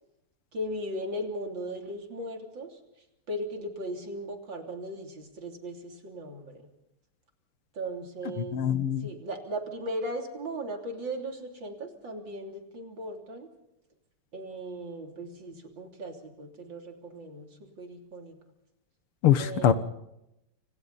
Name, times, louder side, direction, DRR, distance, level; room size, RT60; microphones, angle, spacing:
voice 1, 0.5-2.8 3.3-6.6 7.7-13.5 14.3-18.4 19.4-19.7, right 1 dB, 60° right, 3 dB, 4.0 m, -37 dB
voice 2, 8.4-9.1 19.2-19.7, left 10 dB, 90° left, 12 dB, 2.2 m, -23 dB
29.0 x 26.0 x 4.2 m, 0.86 s
omnidirectional pair, 2.3 m